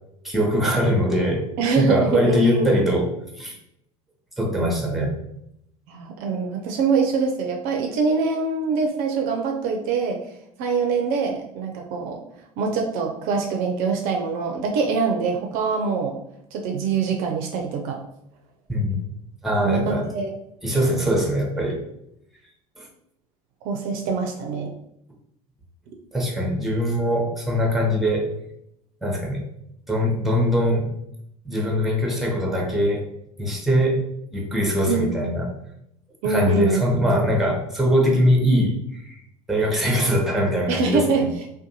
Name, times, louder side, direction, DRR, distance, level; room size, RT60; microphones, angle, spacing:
voice 1, 0.2-1.5 1.7-3.1 3.3-3.6 4.4-5.1 18.7-19.0 19.4-20.1 20.6-21.8 22.8-22.9 26.1-28.3 29.0-29.4 29.9-30.9 31.4-33.1 33.4-34.0 34.3-35.5 36.2-39.2 39.5-41.3, equal, ahead, 0 dB, 0.6 m, -22 dB
voice 2, 1.6-2.7 5.9-10.2 10.6-12.2 12.6-16.2 16.5-18.0 19.6-20.3 23.6-24.7 34.9-35.1 36.2-36.8 40.7-41.3, right 4 dB, 55° right, 3 dB, 0.4 m, -24 dB
2.5 x 2.2 x 2.7 m, 0.76 s
figure-of-eight pair, 70°, 19 cm